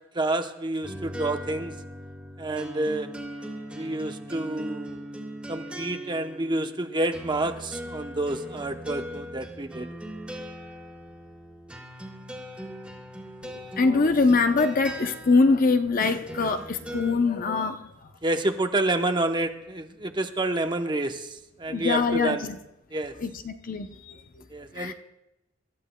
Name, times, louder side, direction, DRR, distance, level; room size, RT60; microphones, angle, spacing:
voice 1, 0.1-1.7 2.4-3.1 3.7-5.0 5.5-9.9 18.2-22.5 22.9-23.1 24.5-24.9, right 2 dB, 25° right, 6 dB, 0.8 m, -28 dB
sound 1, 0.8-17.1, equal, 5° right, 2.0 m, -40 dB
voice 2, 13.4-17.9 21.7-22.6 23.2-24.2 24.8-24.9, left 3 dB, 45° left, 7 dB, 0.7 m, -23 dB
27.0 x 13.5 x 2.2 m, 0.90 s
head